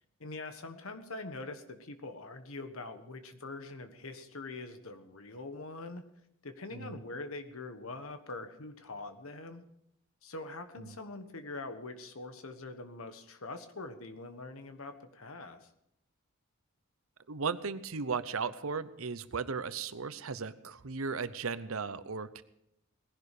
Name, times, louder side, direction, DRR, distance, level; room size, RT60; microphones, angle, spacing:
voice 1, 0.2-6.0 6.4-9.6 10.2-15.7, left 3 dB, 80° left, 8 dB, 1.4 m, -43 dB
voice 2, 17.3-22.4, right 5 dB, 75° right, 14 dB, 0.8 m, -36 dB
19.0 x 11.0 x 5.0 m, 0.79 s
head